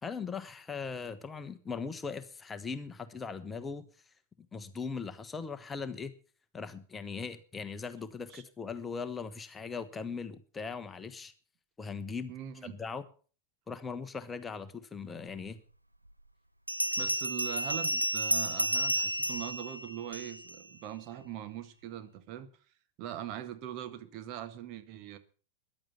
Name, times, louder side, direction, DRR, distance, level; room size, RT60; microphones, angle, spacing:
voice 1, 0.0-3.9 4.5-6.1 6.5-11.3 11.8-12.3 12.7-13.0 13.7-15.6, left 5 dB, 15° left, 1.2 m, -39 dB
voice 2, 12.3-12.8 17.0-22.5 23.0-25.2, right 11 dB, 40° right, 1.6 m, -41 dB
Bell, 15.5-15.6 16.7-20.6, right 1 dB, 85° right, 0.6 m, -31 dB
14.5 x 11.0 x 5.9 m
figure-of-eight pair, 90°, 0 cm